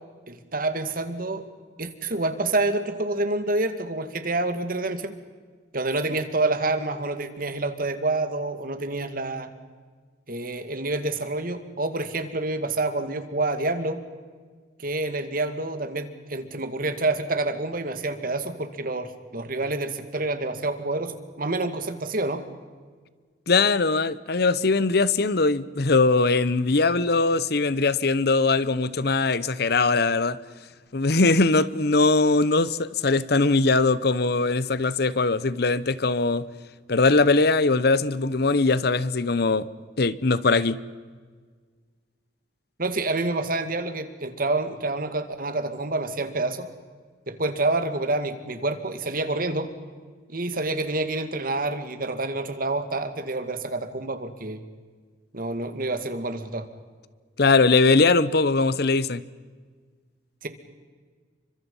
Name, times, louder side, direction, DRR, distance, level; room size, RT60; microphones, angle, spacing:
voice 1, 0.3-1.5 1.8-5.1 5.7-9.5 10.3-14.0 14.8-22.4 42.8-46.7 47.3-49.7 50.3-54.6 55.3-56.7 60.4-60.5, right 2 dB, 50° right, 2.3 m, -28 dB
voice 2, 23.5-30.4 30.9-36.4 36.9-39.7 40.0-40.8 57.4-59.2, left 3 dB, 60° left, 0.9 m, -21 dB
29.5 x 25.0 x 5.6 m
head